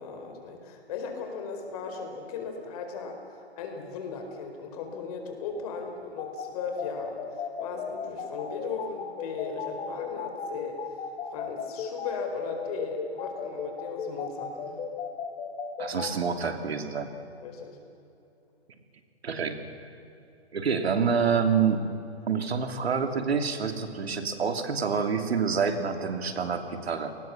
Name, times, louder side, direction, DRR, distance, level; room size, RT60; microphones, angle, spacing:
voice 1, 0.0-10.8 11.3-14.7 17.4-17.8, left 5 dB, 35° left, 4 dB, 4.5 m, -37 dB
sound 1, 6.2-16.1, left 7 dB, 15° left, 2.4 m, -35 dB
voice 2, 15.8-17.1 19.2-19.6 20.5-21.8 22.3-27.1, right 6 dB, 70° right, 6 dB, 3.0 m, -27 dB
28.5 x 20.0 x 7.3 m, 2.8 s
hypercardioid pair, 145°, 32 cm